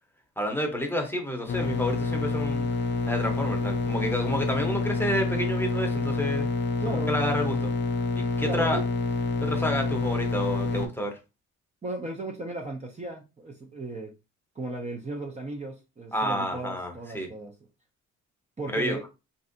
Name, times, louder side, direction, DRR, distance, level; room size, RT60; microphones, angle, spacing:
voice 1, 0.4-2.7 3.1-6.5 6.9-7.7 8.2-8.8 9.4-11.2 16.1-17.3 18.7-19.0, equal, 5° left, 0.8 m, -29 dB
sound 1, 1.5-10.9, left 3 dB, 40° left, 0.5 m, -27 dB
voice 2, 6.8-7.2 8.4-8.8 11.8-14.1 14.6-17.5 18.6-19.1, right 2 dB, 25° right, 0.6 m, -35 dB
3.2 x 2.6 x 2.6 m
cardioid pair, 90°, 30 cm